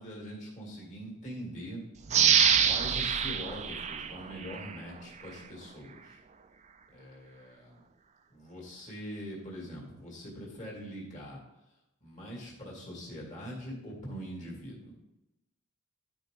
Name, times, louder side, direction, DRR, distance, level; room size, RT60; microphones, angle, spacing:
voice 1, 0.0-1.8 2.6-6.2 6.9-7.8 8.3-11.4 12.0-14.9, equal, 35° left, -3 dB, 2.3 m, -43 dB
sound 1, 2.1-4.8 5.2-5.3, right 7 dB, 30° right, 0.4 m, -26 dB
12.0 x 4.6 x 3.8 m, 0.94 s
head